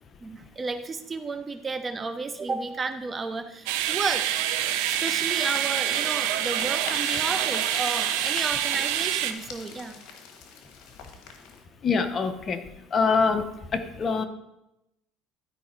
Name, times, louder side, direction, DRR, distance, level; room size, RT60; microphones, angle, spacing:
voice 1, 0.2-4.4 5.0-9.9, right 4 dB, 25° right, 10 dB, 0.6 m, -32 dB
sound 1, 3.7-9.3, right 12 dB, 80° right, 0.7 m, -26 dB
sound 2, 4.4-11.6, left 5 dB, 65° left, 1.5 m, -40 dB
voice 2, 11.8-12.6 12.9-13.4 13.7-14.2, left 5 dB, 35° left, 8 dB, 0.9 m, -24 dB
12.0 x 5.1 x 4.4 m, 0.87 s
supercardioid pair, 110°, 0 cm